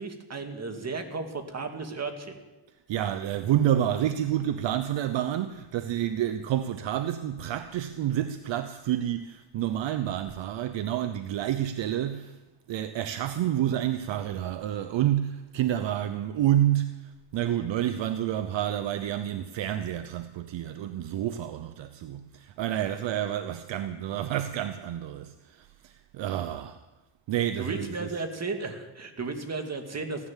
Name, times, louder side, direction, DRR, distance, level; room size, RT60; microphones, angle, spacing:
voice 1, 0.0-2.4 27.6-30.3, right 3 dB, 30° right, 2.3 m, -34 dB
voice 2, 2.9-12.4 12.7-26.8 27.3-28.1, right 11 dB, 60° right, 0.8 m, -29 dB
16.0 x 11.0 x 7.4 m
cardioid pair, 95°, 49 cm